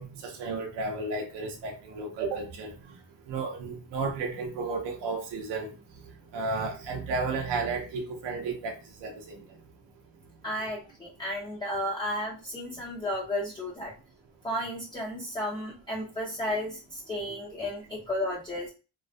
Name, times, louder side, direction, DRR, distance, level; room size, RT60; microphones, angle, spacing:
voice 1, 0.0-2.7 3.3-5.7 6.3-9.4, right 3 dB, 70° right, 0.7 m, -33 dB
voice 2, 10.4-13.9 14.4-18.7, left 1 dB, 10° left, 0.6 m, -33 dB
2.3 x 2.1 x 2.5 m
cardioid pair, 100°, 43 cm